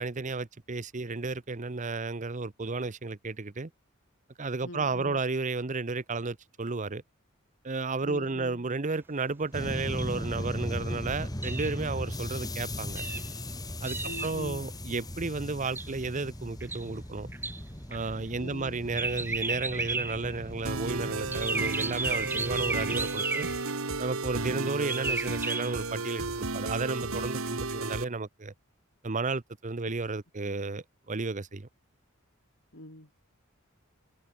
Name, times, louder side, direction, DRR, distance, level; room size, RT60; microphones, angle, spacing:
voice 1, 0.0-3.7 4.4-7.0 7.6-13.0 13.8-17.3 17.9-23.5 24.0-28.5 29.0-31.7, right 3 dB, 35° right, 0.8 m, -33 dB
voice 2, 4.6-5.2 8.0-8.7 14.0-14.6 18.4-18.8 24.4-24.7 29.8-29.9 32.7-33.2, left 1 dB, 60° left, 6.8 m, -43 dB
sound 1, 9.5-23.1, left 1 dB, 20° left, 3.3 m, -38 dB
sound 2, 10.0-10.1 11.4-11.8 13.0-13.3 13.8-14.4 15.7-15.9 16.6-16.9 17.3-17.6 17.9-18.0 18.9-20.4 21.3-23.8 24.9-25.8, right 3 dB, 10° right, 0.4 m, -33 dB
sound 3, 20.7-28.0, right 3 dB, 80° right, 2.2 m, -33 dB
head